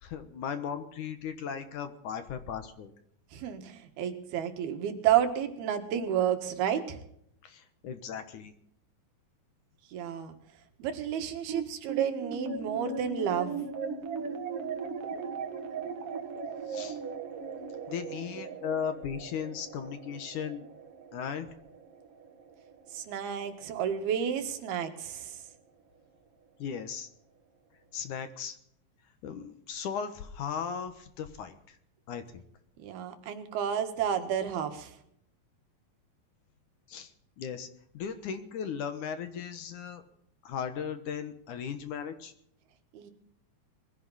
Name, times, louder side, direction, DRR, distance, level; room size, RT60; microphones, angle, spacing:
voice 1, 0.0-2.9 7.4-8.5 16.7-17.0 17.9-20.7 21.1-21.5 26.6-27.1 27.9-28.6 29.2-31.8 32.1-32.4 36.9-37.1 37.4-37.7 37.9-40.0 40.4-42.3, left 7 dB, 65° left, 9 dB, 2.4 m, -37 dB
voice 2, 3.3-7.0 9.9-10.3 10.8-13.6 22.9-25.4 32.8-34.9 42.9-43.1, right 9 dB, 90° right, 6 dB, 3.6 m, -31 dB
sound 1, 11.5-24.1, right 5 dB, 50° right, 2.1 m, -39 dB
21.5 x 15.5 x 4.2 m, 0.71 s
omnidirectional pair, 4.3 m